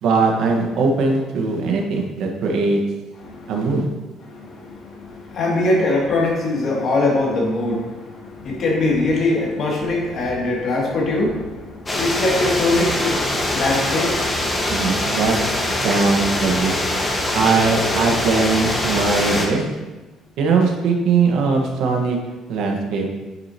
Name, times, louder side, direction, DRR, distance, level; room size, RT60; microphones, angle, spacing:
voice 1, 0.0-2.8 3.5-3.9 14.7-15.4 15.8-16.8 17.3-19.6 20.4-22.2 22.5-23.1, right 4 dB, 75° right, 1 dB, 1.4 m, -20 dB
voice 2, 3.2-3.5 4.2-14.4, left 2 dB, 55° left, -3 dB, 2.5 m, -22 dB
sound 1, 11.9-19.5, left 1 dB, 20° left, 1.4 m, -23 dB
9.4 x 6.3 x 2.9 m, 1.2 s
cardioid pair, 120°, 0 cm